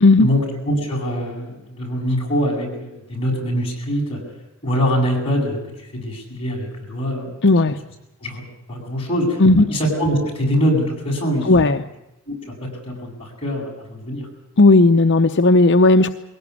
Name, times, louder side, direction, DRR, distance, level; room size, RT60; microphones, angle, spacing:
voice 1, 0.2-4.2 4.6-5.6 5.9-7.3 8.2-8.4 8.7-11.5 12.3-14.3, equal, 25° left, -2 dB, 8.0 m, -23 dB
voice 2, 7.4-7.8 9.4-9.7 11.4-11.8 14.6-16.1, left 2 dB, 55° left, 7 dB, 0.7 m, -13 dB
21.5 x 17.5 x 9.7 m, 0.96 s
head